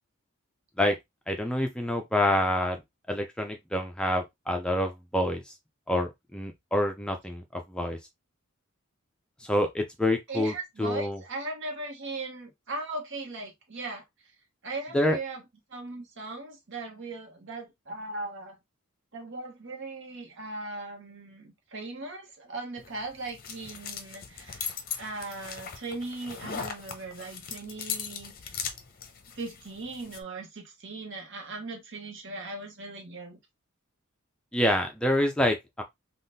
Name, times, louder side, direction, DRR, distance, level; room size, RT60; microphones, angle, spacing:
voice 1, 1.3-2.8 3.1-5.5 5.9-8.0 9.4-11.2 14.9-15.2 34.5-35.8, left 1 dB, 5° left, 0.4 m, -27 dB
voice 2, 10.3-14.0 14.6-15.4 15.7-18.6 19.1-28.3 29.4-33.4, right 3 dB, 60° right, 1.0 m, -38 dB
sound 1, 22.8-30.2, left 7 dB, 45° left, 0.6 m, -39 dB
3.6 x 2.3 x 2.6 m
head